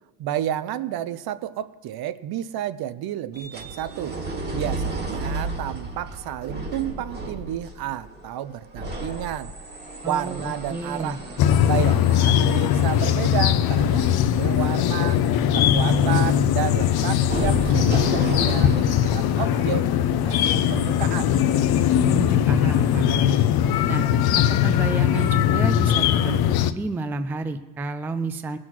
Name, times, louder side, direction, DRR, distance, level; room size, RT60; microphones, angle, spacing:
voice 1, 0.2-4.2 4.5-9.5 10.1-11.2 11.5-15.2 15.5-19.9 20.2-21.4, right 11 dB, 55° right, 14 dB, 0.7 m, -31 dB
sound 1, 3.3-21.5 22.1-22.2, right 2 dB, 20° right, 1.6 m, -34 dB
voice 2, 10.0-11.2 22.0-23.4 23.9-24.1 24.6-26.4 26.7-28.6, right 3 dB, 5° right, 9 dB, 0.3 m, -31 dB
sound 2, 11.4-26.7, left 10 dB, 60° left, 0.7 m, -20 dB
19.0 x 6.3 x 6.1 m, 1.3 s
cardioid pair, 125°, 43 cm